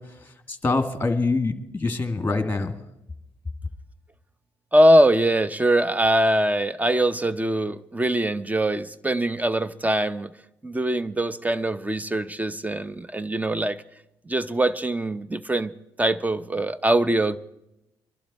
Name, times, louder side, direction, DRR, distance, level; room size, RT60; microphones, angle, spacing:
voice 1, 0.5-2.7, left 3 dB, 20° left, 7 dB, 2.1 m, -25 dB
voice 2, 4.7-10.3 10.6-13.8 14.3-15.7 16.0-17.4, right 1 dB, 15° right, 15 dB, 0.8 m, -22 dB
23.5 x 11.5 x 4.3 m, 0.87 s
supercardioid pair, 60°, 11 cm